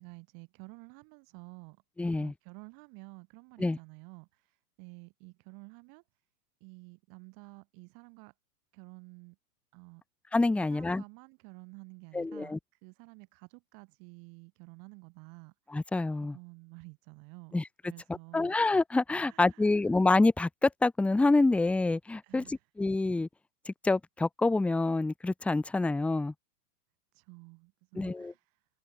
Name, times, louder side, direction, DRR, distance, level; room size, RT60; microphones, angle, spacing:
voice 1, 0.0-1.8 2.0-6.0 6.6-8.3 8.7-9.4 9.7-10.0 10.6-12.5 12.8-15.5 16.3-17.6 17.9-18.5 19.2-19.8 22.2-22.6 27.1-28.6, right 32 dB, 45° right, 6.8 m, -51 dB
voice 2, 2.0-2.3 3.6-3.8 10.3-11.0 12.1-12.6 15.7-16.4 17.5-17.7 18.3-23.3 23.7-26.3 28.0-28.3, left 2 dB, 5° left, 0.6 m, -27 dB
open air
hypercardioid pair, 120°, 48 cm